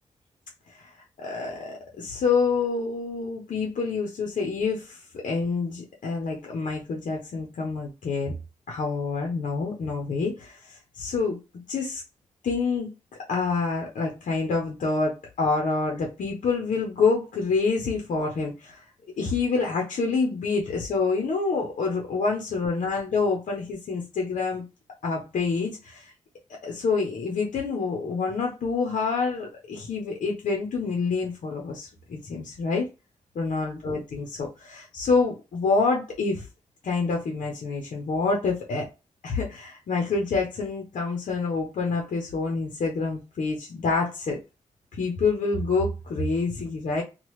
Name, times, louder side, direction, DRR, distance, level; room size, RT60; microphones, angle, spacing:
voice 1, 1.2-8.3 8.7-11.4 11.7-12.0 12.4-12.9 13.3-18.8 19.2-24.6 25.0-26.1 26.6-32.8 33.3-36.5 36.8-38.9 39.2-44.4 45.0-47.0, left 4 dB, 75° left, 0 dB, 0.8 m, -27 dB
3.0 x 2.3 x 3.1 m, 0.28 s
cardioid pair, 75°, 13 cm